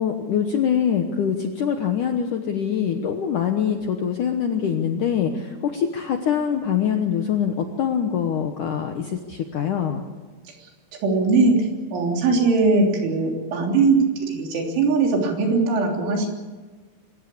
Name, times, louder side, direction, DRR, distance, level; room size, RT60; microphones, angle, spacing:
voice 1, 0.0-10.0, left 8 dB, 75° left, 5 dB, 1.9 m, -24 dB
voice 2, 11.0-16.3, right 3 dB, 90° right, 1 dB, 5.9 m, -20 dB
25.5 x 15.0 x 8.6 m, 1.3 s
omnidirectional pair, 5.3 m